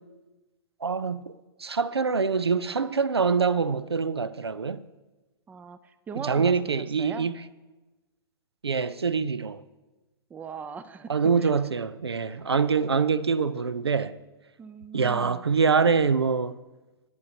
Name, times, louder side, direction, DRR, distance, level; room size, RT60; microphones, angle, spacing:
voice 1, 0.8-1.3 1.6-4.8 6.3-7.4 8.6-9.6 11.1-14.1 14.9-16.6, right 5 dB, 85° right, 0.5 m, -25 dB
voice 2, 5.5-7.3 10.3-11.1 11.4-11.5 12.3-12.4 14.6-15.4, right 6 dB, 10° right, 0.4 m, -40 dB
18.0 x 9.4 x 2.8 m
figure-of-eight pair, 110°, 13 cm